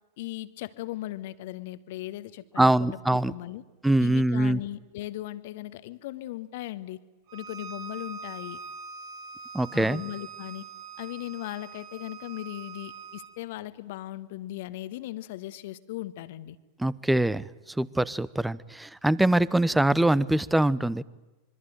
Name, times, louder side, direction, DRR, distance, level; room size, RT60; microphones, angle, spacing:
voice 1, 0.2-3.0 3.3-3.6 4.0-7.0 7.3-8.6 9.7-10.7 11.0-16.6, left 15 dB, 50° left, 15 dB, 1.4 m, -38 dB
voice 2, 2.6-3.3 3.8-4.6 9.5-10.0 16.8-17.5 17.8-21.0, right 1 dB, 5° right, 22 dB, 0.9 m, -23 dB
Bowed string instrument, 7.3-13.3, right 5 dB, 40° right, 4.3 m, -43 dB
26.0 x 24.0 x 9.2 m, 1.1 s
figure-of-eight pair, 90°, 0 cm